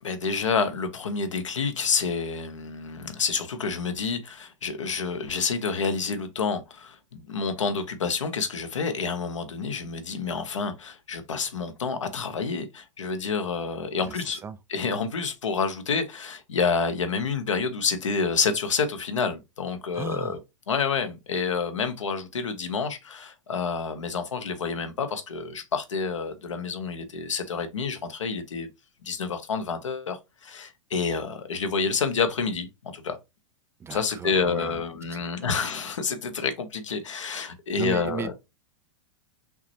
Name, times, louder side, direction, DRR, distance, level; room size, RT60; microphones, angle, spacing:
voice 1, 0.0-14.4 14.7-20.4 20.7-28.7 29.0-33.2 33.9-38.3, left 5 dB, 75° left, 0.9 m, -28 dB
voice 2, 14.0-14.6 19.9-20.4 33.8-34.8 35.1-35.2 37.8-38.3, right 6 dB, 15° right, 0.4 m, -36 dB
5.8 x 3.0 x 2.9 m
figure-of-eight pair, 95°, 16 cm